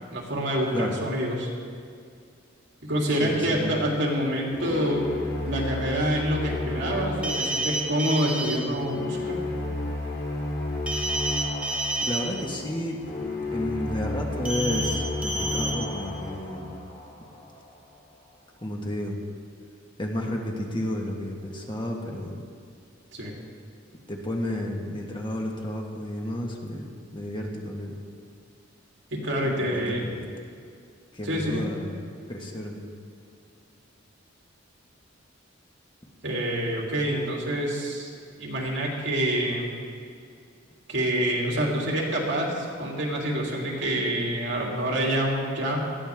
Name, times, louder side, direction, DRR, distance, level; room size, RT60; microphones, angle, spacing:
voice 1, 0.1-1.5 2.8-5.0 5.4-9.4 23.1-23.3 29.1-30.0 31.2-31.6 36.2-38.1 38.4-39.7 40.9-45.9, right 1 dB, 70° right, -2 dB, 3.0 m, -27 dB
voice 2, 3.2-3.8 12.0-13.0 13.5-16.7 18.6-19.2 20.0-22.4 24.1-28.0 29.4-30.2 31.1-32.0 32.3-32.8, left 1 dB, 25° left, 0 dB, 1.6 m, -32 dB
sound 1, 4.5-17.6, left 2 dB, 55° left, 3.2 m, -32 dB
sound 2, 7.2-8.6 10.9-12.2 14.5-14.9 15.2-15.7, right 1 dB, 5° right, 2.1 m, -29 dB
20.0 x 14.0 x 3.6 m, 2.3 s
head